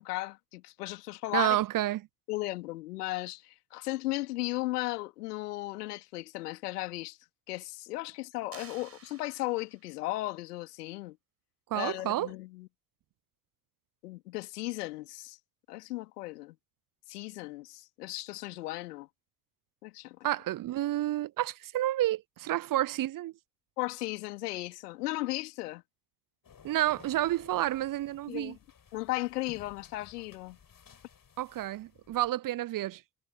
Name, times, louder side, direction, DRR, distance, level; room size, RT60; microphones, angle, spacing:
voice 1, 0.0-1.6 2.3-7.2 7.5-11.2 11.7-12.7 14.0-15.4 15.7-16.5 17.1-19.1 19.8-20.2 23.8-25.8 28.3-28.6 28.9-30.6, left 19 dB, 80° left, 3.2 m, -36 dB
voice 2, 1.3-2.0 11.7-12.3 20.2-23.3 26.6-28.6 31.4-33.0, right 14 dB, 45° right, 0.7 m, -30 dB
sound 1, 8.5-10.0, right 4 dB, 30° right, 5.1 m, -52 dB
sound 2, 26.4-32.3, left 7 dB, 45° left, 7.3 m, -56 dB
figure-of-eight pair, 40°, 46 cm